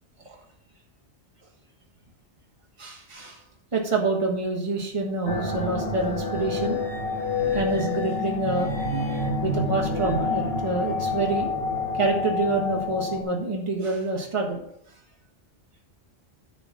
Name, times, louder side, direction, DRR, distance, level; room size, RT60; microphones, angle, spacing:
voice 1, 2.8-3.4 3.7-6.8 7.5-8.7 9.4-11.5 11.9-14.6, right 3 dB, 25° right, 0 dB, 1.5 m, -27 dB
sound 1, 5.3-13.2, left 3 dB, 30° left, 1.7 m, -28 dB
9.9 x 4.0 x 7.2 m, 0.73 s
omnidirectional pair, 1.2 m